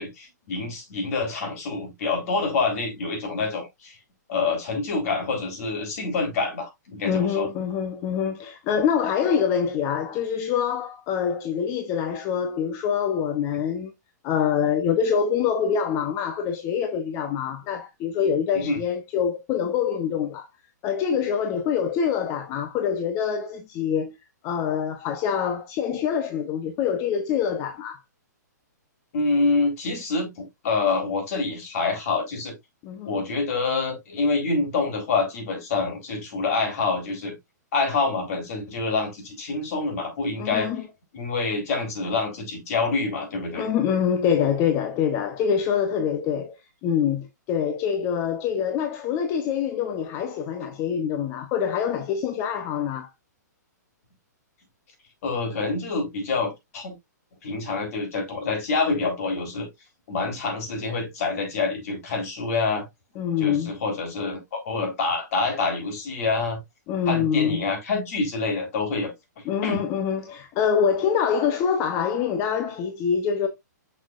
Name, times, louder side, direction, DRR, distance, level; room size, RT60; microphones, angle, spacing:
voice 1, 0.0-4.0 4.3-7.5 18.5-18.8 29.1-32.5 33.1-37.4 37.7-40.7 41.1-43.7 55.2-56.9 57.4-59.7 60.1-62.9 63.4-66.6 67.1-69.1 69.6-69.9, left 3 dB, 55° left, 4.1 m, -26 dB
voice 2, 7.0-13.9 14.2-20.5 20.8-24.2 24.4-28.0 32.8-33.2 40.4-40.8 43.5-46.6 46.8-53.1 63.2-63.7 66.9-67.6 69.5-73.5, left 7 dB, 30° left, 0.9 m, -25 dB
6.6 x 6.0 x 2.5 m
hypercardioid pair, 130°, 10 cm